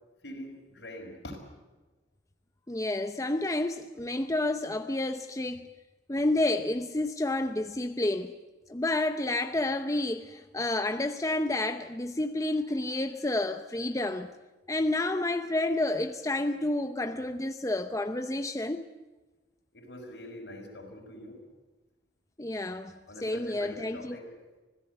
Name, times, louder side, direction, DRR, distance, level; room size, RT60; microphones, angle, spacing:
voice 1, 0.2-1.4 19.7-21.5 23.1-24.4, left 1 dB, 70° left, 5.8 m, -44 dB
voice 2, 2.7-5.7 6.1-8.4 8.7-14.3 14.7-18.9 22.4-24.2, left 2 dB, 20° left, 0.7 m, -30 dB
25.5 x 17.0 x 8.2 m
head